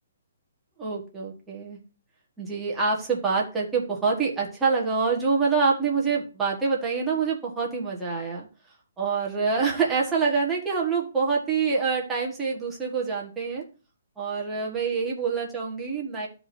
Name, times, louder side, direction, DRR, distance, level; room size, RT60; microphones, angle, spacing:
voice 1, 0.8-1.8 2.4-8.5 9.0-13.6 14.2-16.3, right 5 dB, 5° right, -4 dB, 1.5 m, -26 dB
13.5 x 4.9 x 2.7 m, 0.34 s
hypercardioid pair, 175°, 0 cm